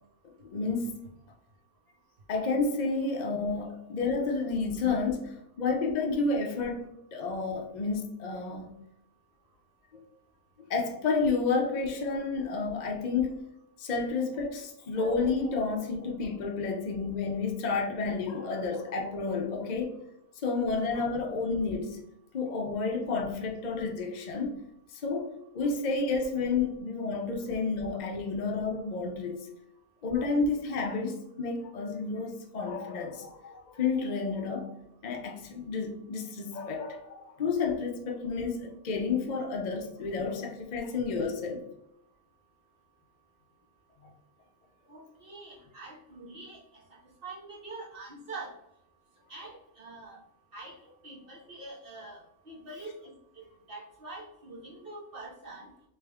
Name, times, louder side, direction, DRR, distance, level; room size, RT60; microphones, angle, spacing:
voice 1, 0.4-1.0 2.3-8.7 9.9-10.0 10.7-13.4 13.8-20.0 20.4-22.0 22.3-24.6 24.9-25.3 25.5-29.5 30.0-34.7 35.0-41.6, left 4 dB, 50° left, 2 dB, 0.5 m, -30 dB
voice 2, 44.9-46.8 47.2-48.6 49.3-50.2 50.5-55.7, right 2 dB, 45° right, -4 dB, 1.1 m, -45 dB
3.4 x 3.4 x 3.4 m, 0.79 s
omnidirectional pair, 1.5 m